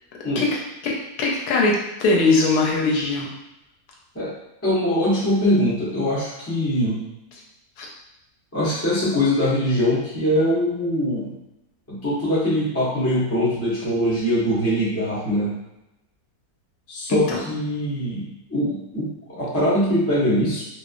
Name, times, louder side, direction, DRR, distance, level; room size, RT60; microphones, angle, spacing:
voice 1, 0.8-1.7 2.0-3.3 7.8-7.9 17.3-17.4, left 3 dB, 80° left, -2 dB, 1.1 m, -20 dB
voice 2, 4.6-7.0 8.5-11.3 11.9-15.5 16.9-20.6, equal, 25° left, -7 dB, 0.3 m, -22 dB
2.9 x 2.1 x 2.4 m, 0.93 s
omnidirectional pair, 1.6 m